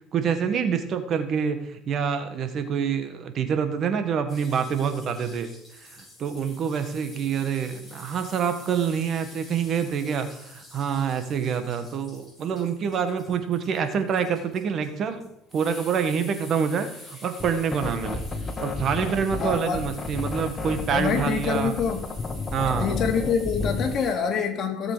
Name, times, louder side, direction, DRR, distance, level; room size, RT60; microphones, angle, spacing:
voice 1, 0.1-5.5 5.8-18.2 18.6-21.7 22.5-23.0, right 7 dB, 45° right, 9 dB, 1.7 m, -26 dB
sound 1, 4.3-24.1, left 1 dB, 10° left, 6.2 m, -47 dB
sound 2, 17.4-24.0, left 3 dB, 25° left, 1.4 m, -31 dB
voice 2, 19.4-19.9 20.9-22.0 22.8-24.9, left 6 dB, 45° left, 3 dB, 2.7 m, -26 dB
17.0 x 7.4 x 5.1 m, 0.80 s
cardioid pair, 115°, 0 cm